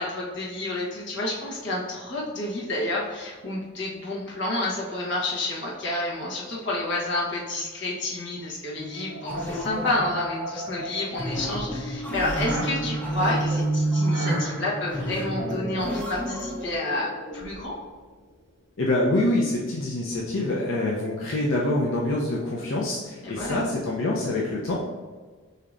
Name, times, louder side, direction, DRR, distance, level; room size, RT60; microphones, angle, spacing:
voice 1, 0.0-17.8 23.2-23.7, left 2 dB, 65° left, -4 dB, 1.1 m, -29 dB
sound 1, 8.8-17.9, right 2 dB, 75° right, 1.0 m, -31 dB
sound 2, 9.2-16.8, left 1 dB, 10° left, 0.6 m, -35 dB
voice 2, 18.8-24.8, left 1 dB, 90° left, -4 dB, 0.6 m, -25 dB
6.5 x 2.8 x 2.5 m, 1.4 s
head